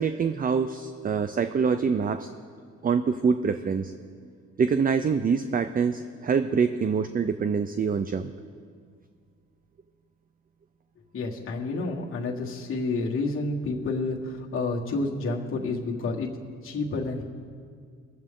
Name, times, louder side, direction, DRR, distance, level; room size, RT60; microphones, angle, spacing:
voice 1, 0.0-2.3 2.8-3.9 4.6-8.3, right 5 dB, 30° right, 10 dB, 0.5 m, -25 dB
voice 2, 11.1-16.3 16.6-17.2, left 3 dB, 45° left, -4 dB, 1.6 m, -29 dB
22.0 x 7.7 x 3.8 m, 2.1 s
cardioid pair, 90°, 30 cm